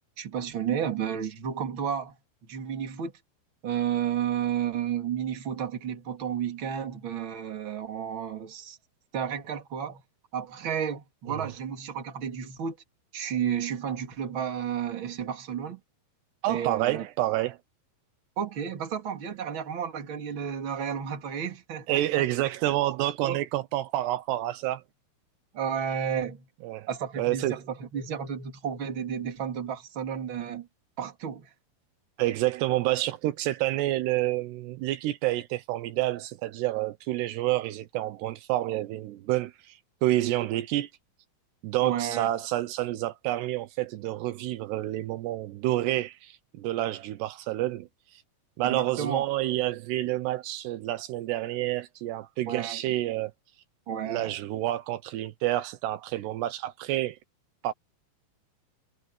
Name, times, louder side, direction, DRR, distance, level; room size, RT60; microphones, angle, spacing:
voice 1, 0.2-2.2 2.5-3.1 3.6-8.8 9.1-10.0 10.3-12.8 13.1-15.8 16.5-17.1 18.4-22.3 23.2-23.4 25.5-26.5 26.9-30.7 31.0-31.5 41.8-42.3 48.6-49.2 52.5-52.8 53.9-54.4, right 8 dB, 35° right, 2.8 m, -32 dB
voice 2, 16.4-17.6 21.9-24.8 26.6-26.9 27.2-27.6 32.2-40.9 41.6-47.9 48.1-48.2 48.6-53.3 54.1-57.2 57.6-57.7, right 15 dB, 80° right, 3.0 m, -29 dB
omnidirectional pair, 4.8 m